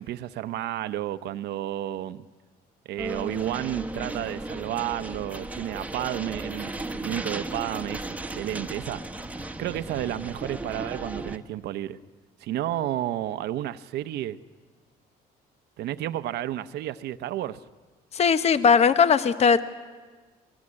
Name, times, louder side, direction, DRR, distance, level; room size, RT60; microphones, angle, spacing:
voice 1, 0.0-2.3 2.8-9.0 9.6-12.0 12.4-14.4 15.8-17.6, right 13 dB, 75° right, 11 dB, 0.8 m, -31 dB
sound 1, 3.0-11.4, right 2 dB, 10° right, 1.3 m, -35 dB
voice 2, 18.1-19.6, left 6 dB, 40° left, 11 dB, 1.0 m, -19 dB
23.5 x 20.5 x 9.8 m, 1.4 s
cardioid pair, 110°, 17 cm